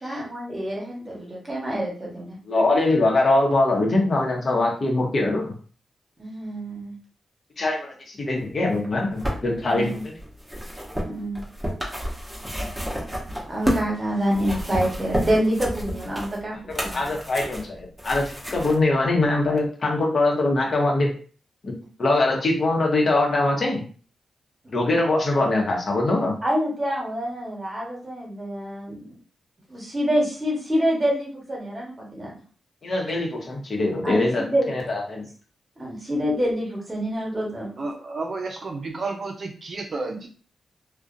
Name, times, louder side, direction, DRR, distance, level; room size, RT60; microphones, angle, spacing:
voice 1, 0.0-2.4 6.2-6.9 9.6-9.9 11.0-11.4 13.5-17.1 26.4-29.1 29.7-32.3 34.0-34.7 35.8-37.8, equal, 30° right, -2 dB, 1.1 m, -27 dB
voice 2, 2.5-5.5 7.6-10.1 16.7-21.1 21.6-21.7 22.0-23.8 24.7-26.4 32.8-35.2, left 2 dB, 55° left, 0 dB, 0.8 m, -22 dB
sound 1, 8.8-13.9 14.3-18.8 19.6-19.7, equal, 10° right, 0.9 m, -30 dB
voice 3, 37.8-40.3, right 3 dB, 55° right, 2 dB, 0.4 m, -31 dB
2.4 x 2.1 x 2.6 m, 0.41 s
cardioid pair, 60°, 0 cm